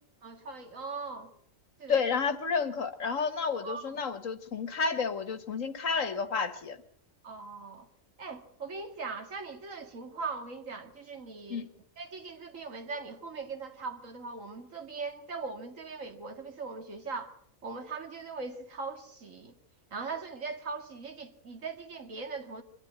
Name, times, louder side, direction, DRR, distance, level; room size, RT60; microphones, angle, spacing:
voice 1, 0.2-1.3 1.8-2.0 3.6-3.8 7.2-7.9 8.2-11.7 12.0-17.3 17.6-19.5 19.9-22.6, right 4 dB, 75° right, 2.5 m, -40 dB
voice 2, 1.9-6.8 11.5-11.7, left 5 dB, 80° left, 1.8 m, -30 dB
24.5 x 12.0 x 9.4 m
omnidirectional pair, 1.4 m